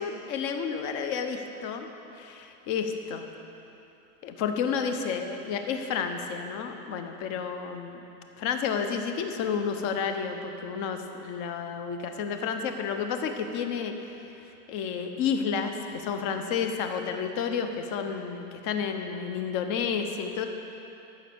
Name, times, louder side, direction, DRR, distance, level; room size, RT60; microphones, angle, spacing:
voice 1, 0.0-1.9 2.1-3.2 4.2-8.0 8.4-14.0 14.7-20.5, left 6 dB, 40° left, 6 dB, 1.0 m, -31 dB
14.0 x 6.3 x 7.0 m, 2.9 s
supercardioid pair, 145°, 47 cm